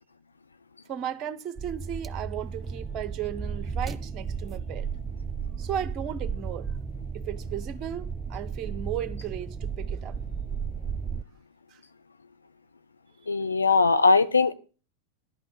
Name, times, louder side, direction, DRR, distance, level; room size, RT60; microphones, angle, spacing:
voice 1, 0.9-4.9 5.6-6.7 7.1-10.2 11.7-11.8, right 10 dB, 35° right, 0.9 m, -35 dB
sound 1, 1.6-11.2, right 5 dB, 15° right, 0.6 m, -34 dB
voice 2, 13.3-14.5, left 4 dB, 75° left, 0.8 m, -20 dB
11.0 x 5.7 x 6.9 m
figure-of-eight pair, 90°, 0 cm